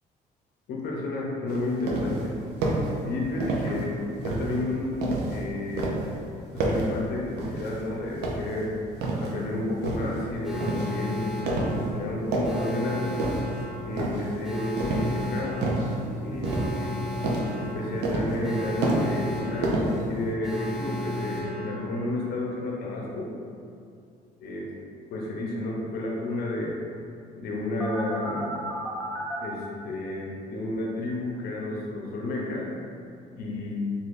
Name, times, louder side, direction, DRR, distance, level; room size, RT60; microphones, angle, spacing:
voice 1, 0.7-2.3 3.0-5.0 5.3-6.0 6.5-8.7 9.2-11.3 11.7-13.3 13.8-15.6 16.2-17.0 17.6-23.3 24.4-24.7 25.1-26.7 27.4-28.6 29.4-32.7 33.3-33.8, left 2 dB, 65° left, -3 dB, 0.7 m, -31 dB
sound 1, 1.5-2.3 2.6-2.9 3.4-3.8 4.2-5.4 5.8-6.1 6.6-7.0 7.4-7.8 8.2-9.3 9.8-10.2 10.6-10.9 11.5-11.9 12.2-12.7 13.2-13.6 14.0-14.4 14.8-15.2 15.6-16.0 16.4-17.0 17.2-17.6 18.0-18.5 18.8-19.3 19.6-20.3, right 2 dB, 80° right, 0.5 m, -28 dB
Alarm, 10.4-22.3 27.8-29.4, left 1 dB, ahead, 0.6 m, -35 dB
Laughter, 15.5-20.0, equal, 60° right, 0.9 m, -46 dB
3.1 x 2.6 x 2.6 m, 2.4 s
cardioid pair, 110°, 17 cm